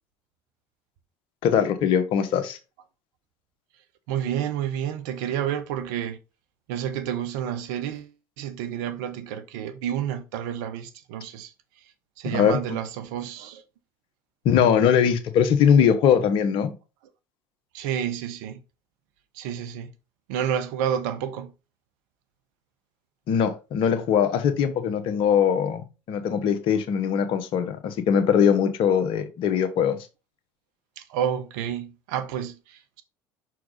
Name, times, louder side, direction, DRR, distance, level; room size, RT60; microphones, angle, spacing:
voice 1, 1.4-2.6 12.2-12.6 14.4-16.7 23.3-30.0, left 8 dB, 60° left, 1.3 m, -21 dB
voice 2, 4.1-6.2 6.7-8.1 8.4-11.5 12.2-13.6 17.7-18.6 19.3-19.9 20.3-21.5 31.0-33.0, right 9 dB, 75° right, 1.1 m, -30 dB
6.1 x 4.6 x 3.9 m
hypercardioid pair, 70°, 10 cm